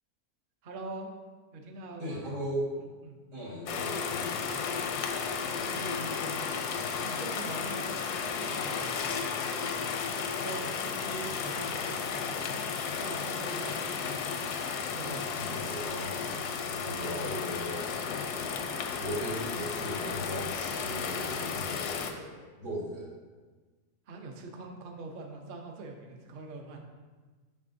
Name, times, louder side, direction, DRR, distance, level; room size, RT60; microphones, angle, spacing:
voice 1, 0.6-1.1 1.5-2.3 3.0-3.2 4.4-4.7 5.5-6.4 7.0-8.1 8.4-9.0 10.3-14.1 14.9-15.7 16.4-16.5 24.1-26.8, right 3 dB, 50° right, 2 dB, 0.6 m, -43 dB
voice 2, 2.0-2.7 3.3-4.4 15.4-16.1 16.8-17.9 18.2-18.4 18.9-23.1, equal, 90° right, -7 dB, 2.7 m, -37 dB
sound 1, 3.7-22.1, left 6 dB, 85° left, 1.2 m, -33 dB
7.4 x 6.0 x 2.6 m, 1.4 s
omnidirectional pair, 1.7 m